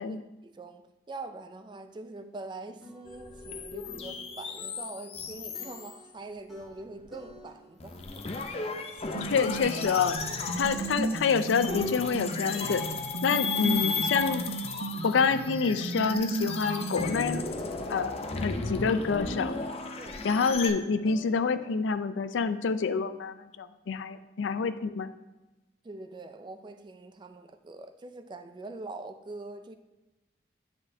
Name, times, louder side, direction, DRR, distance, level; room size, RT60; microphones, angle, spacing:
voice 1, 0.0-8.3 20.0-20.3 24.6-24.7 25.8-29.8, right 2 dB, 25° right, 0.3 m, -44 dB
sound 1, 2.2-2.3 2.8-3.6 3.8-6.2 6.5-7.8 8.1-11.5 11.8-16.7 16.9-18.2 18.5-21.8, equal, ahead, 1.2 m, -50 dB
sound 2, 3.1-6.0 6.6-7.4 7.8-20.7, left 4 dB, 35° left, 0.5 m, -35 dB
sound 3, 9.1-17.1, right 3 dB, 80° right, 0.5 m, -35 dB
voice 2, 9.2-10.2 10.6-12.8 13.2-14.4 15.0-17.4 17.9-19.5 20.2-25.1, left 5 dB, 90° left, 0.4 m, -27 dB
9.5 x 5.2 x 2.7 m
head